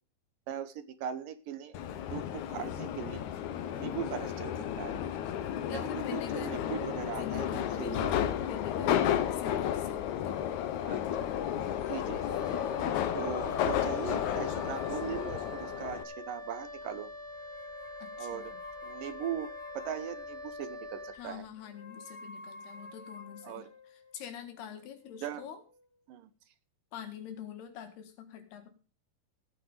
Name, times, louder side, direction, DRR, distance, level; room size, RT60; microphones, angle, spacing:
voice 1, 0.5-1.8 2.1-3.2 3.7-5.0 5.7-8.1 10.8-11.0 11.9-12.2 13.1-17.1 18.2-18.5 18.8-21.5 23.4-23.7 25.2-25.5 26.1-26.3, right 9 dB, 70° right, 12 dB, 2.5 m, -39 dB
Subway metro underground, 1.7-16.0, left 10 dB, 65° left, 2.1 m, -32 dB
voice 2, 3.5-3.9 5.7-6.6 7.2-10.5 18.0-18.6 21.1-25.6 26.9-28.7, left 9 dB, 85° left, 7 dB, 3.9 m, -45 dB
Wind instrument woodwind instrument, 12.1-21.3, left 2 dB, 5° right, 3.3 m, -44 dB
sound 1, 12.4-16.5 17.3-20.7 21.6-25.9, left 4 dB, 35° left, 2.0 m, -52 dB
16.0 x 9.2 x 5.0 m, 0.33 s
omnidirectional pair, 4.5 m